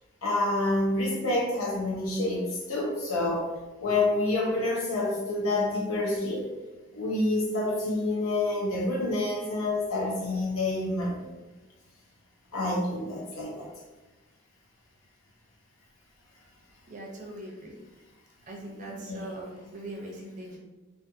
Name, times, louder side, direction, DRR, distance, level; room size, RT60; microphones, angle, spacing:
voice 1, 0.2-3.4 3.8-6.4 6.9-11.2 12.5-13.7 19.1-19.2, left 2 dB, 90° left, -3 dB, 0.8 m, -28 dB
voice 2, 16.9-17.8 18.5-20.6, right 1 dB, 35° right, -1 dB, 0.5 m, -41 dB
2.5 x 2.4 x 2.6 m, 1.1 s
head